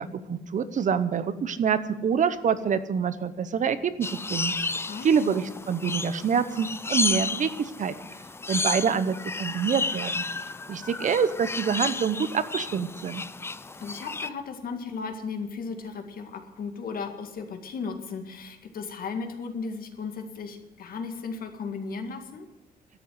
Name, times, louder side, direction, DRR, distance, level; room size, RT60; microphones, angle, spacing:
voice 1, 0.0-4.5 5.0-7.9 8.5-10.2 10.7-13.2, right 7 dB, 55° right, 13 dB, 0.9 m, -26 dB
sound 1, 4.0-14.3, left 3 dB, 15° left, 0.4 m, -32 dB
voice 2, 4.9-5.4 13.8-22.5, left 5 dB, 70° left, 5 dB, 2.0 m, -35 dB
12.5 x 7.7 x 9.8 m, 1.0 s
wide cardioid pair, 145°, 16 cm